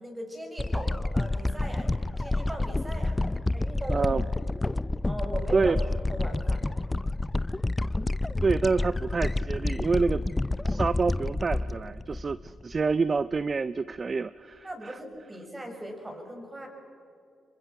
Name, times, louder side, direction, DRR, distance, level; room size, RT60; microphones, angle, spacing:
voice 1, 0.0-3.2 3.5-4.1 5.0-5.7 6.1-6.6 14.6-16.7, right 1 dB, 20° right, 3 dB, 6.8 m, -38 dB
sound 1, 0.6-12.9 13.4-13.5, left 2 dB, 20° left, 0.5 m, -29 dB
voice 2, 3.9-4.2 5.5-5.8 8.4-10.2 10.7-15.0, right 4 dB, 40° right, 17 dB, 0.5 m, -27 dB
29.0 x 23.5 x 6.0 m, 2.6 s
supercardioid pair, 60°, 0 cm